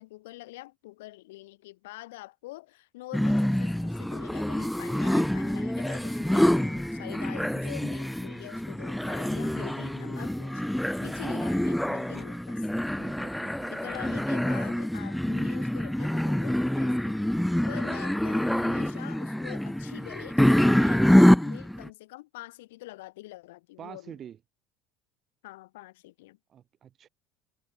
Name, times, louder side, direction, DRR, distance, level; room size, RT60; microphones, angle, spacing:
voice 1, 0.0-13.0 13.7-17.3 17.7-24.2 25.4-26.4, left 19 dB, 85° left, 1.7 m, -45 dB
sound 1, 3.1-21.9, left 1 dB, 5° left, 0.3 m, -26 dB
voice 2, 13.0-13.8 17.6-17.9 23.8-24.4 26.5-27.1, right 9 dB, 45° right, 2.8 m, -46 dB
supercardioid pair, 95°, 0 cm